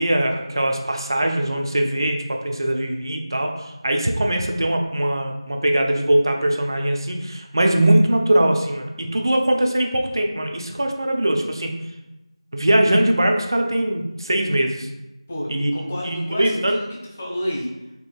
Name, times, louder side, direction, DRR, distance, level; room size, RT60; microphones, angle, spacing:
voice 1, 0.0-11.7 12.5-14.9 15.5-15.7 16.0-16.8, right 1 dB, 45° right, 3 dB, 0.4 m, -21 dB
voice 2, 15.3-17.7, equal, 15° left, -3 dB, 0.3 m, -30 dB
4.3 x 2.3 x 2.2 m, 0.97 s
figure-of-eight pair, 170°, 3 cm